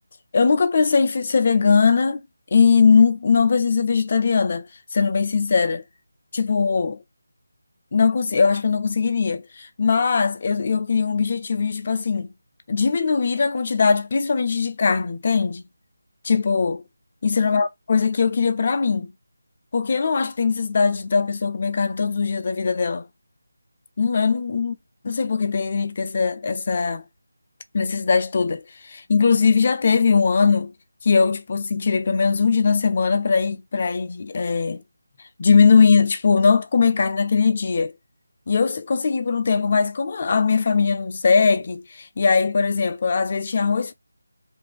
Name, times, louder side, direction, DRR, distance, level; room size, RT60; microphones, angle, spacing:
voice 1, 0.3-2.2 2.5-4.7 4.9-5.8 6.3-7.0 7.9-12.3 12.7-15.6 16.2-16.8 17.2-19.1 19.7-23.1 24.0-24.7 25.1-27.0 27.7-30.7 31.0-34.8 35.4-37.9 38.5-43.9, left 5 dB, 40° left, 0.4 m, -20 dB
2.9 x 2.5 x 3.3 m
figure-of-eight pair, 170°, 0 cm